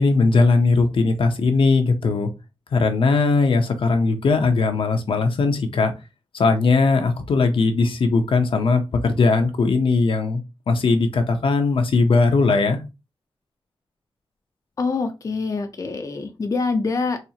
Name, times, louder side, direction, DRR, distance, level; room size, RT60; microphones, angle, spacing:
voice 1, 0.0-2.3 2.7-5.9 6.3-12.8, left 3 dB, 75° left, 6 dB, 0.6 m, -19 dB
voice 2, 14.8-17.2, left 4 dB, 40° left, 6 dB, 0.4 m, -25 dB
4.3 x 2.4 x 2.8 m, 0.26 s
wide cardioid pair, 145°, 9 cm